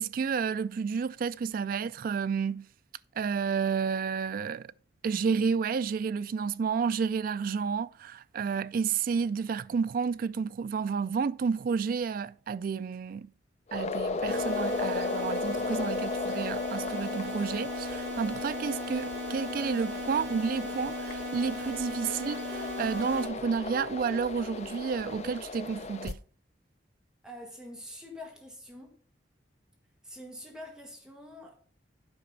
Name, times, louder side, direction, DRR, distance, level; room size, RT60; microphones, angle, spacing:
voice 1, 0.0-2.6 3.2-4.7 5.0-13.3 13.7-26.2, right 6 dB, 50° right, 0.3 m, -31 dB
sound 1, 13.7-26.1, left 3 dB, 40° left, 0.5 m, -35 dB
sound 2, 14.3-23.3, left 1 dB, 85° right, 2.4 m, -37 dB
voice 2, 27.2-29.0 30.0-31.6, left 1 dB, 5° right, 1.3 m, -45 dB
8.7 x 5.1 x 5.4 m
head